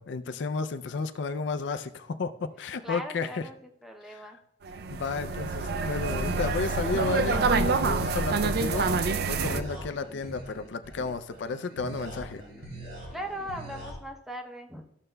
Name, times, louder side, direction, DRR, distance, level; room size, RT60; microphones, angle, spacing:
voice 1, 0.0-3.5 4.0-4.4 4.9-12.4, left 4 dB, 65° left, 10 dB, 0.4 m, -33 dB
voice 2, 2.8-3.5 3.8-4.4 13.1-14.8, equal, ahead, 3 dB, 0.6 m, -39 dB
sound 1, 4.7-9.6, right 4 dB, 50° right, 0.4 m, -27 dB
sound 2, 5.7-13.9, right 1 dB, 90° right, 3.1 m, -42 dB
13.5 x 6.6 x 2.2 m, 0.79 s
head